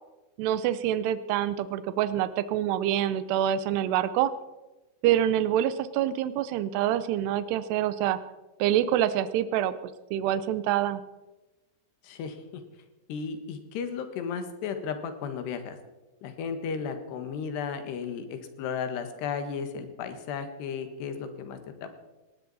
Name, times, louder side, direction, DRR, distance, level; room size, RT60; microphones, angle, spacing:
voice 1, 0.4-4.3 5.0-8.2 8.6-11.0, right 11 dB, 85° right, 14 dB, 2.9 m, -26 dB
voice 2, 12.0-12.6 13.1-15.8 16.2-21.9, left 6 dB, 85° left, 8 dB, 3.7 m, -34 dB
18.5 x 18.0 x 4.2 m, 1.1 s
omnidirectional pair, 4.7 m